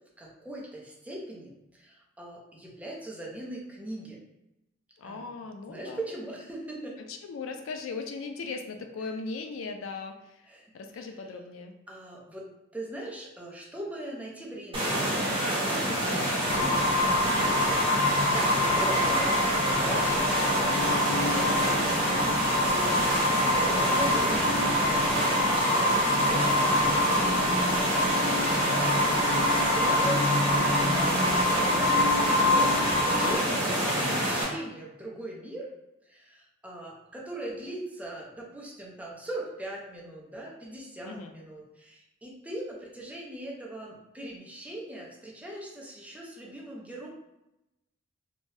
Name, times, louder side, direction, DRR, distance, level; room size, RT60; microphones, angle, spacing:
voice 1, 0.2-4.2 5.0-5.3 5.6-7.0 10.5-10.7 10.9-11.2 11.9-12.5 12.7-19.5 19.7-22.0 22.5-28.3 28.5-35.7 36.1-47.1, right 1 dB, 5° right, -3 dB, 0.5 m, -40 dB
voice 2, 5.0-6.0 7.1-10.4 10.7-11.8 17.1-17.3 22.8-23.4 28.5-28.7 41.0-41.3, left 4 dB, 65° left, 5 dB, 0.3 m, -39 dB
sound 1, 14.7-34.4, right 1 dB, 25° right, 1.0 m, -27 dB
sound 2, 16.4-33.4, left 1 dB, 20° left, 0.9 m, -26 dB
2.7 x 2.1 x 3.1 m, 0.92 s
head